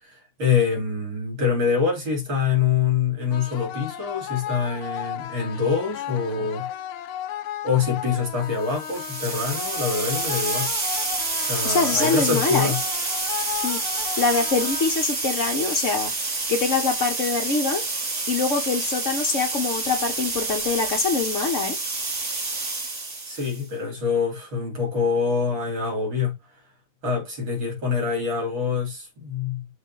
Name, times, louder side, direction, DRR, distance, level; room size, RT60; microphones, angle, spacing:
voice 1, 0.4-6.7 7.6-10.7 11.5-12.8 23.2-26.3 27.0-29.7, left 6 dB, 65° right, 3.4 m, -25 dB
sound 1, 3.3-15.3, left 10 dB, 90° left, 1.5 m, -35 dB
sound 2, 8.7-23.6, right 3 dB, 35° right, 1.8 m, -28 dB
voice 2, 11.6-12.7 13.6-17.8 18.3-21.8, left 4 dB, 55° left, 0.9 m, -24 dB
6.8 x 2.7 x 5.5 m
omnidirectional pair, 2.4 m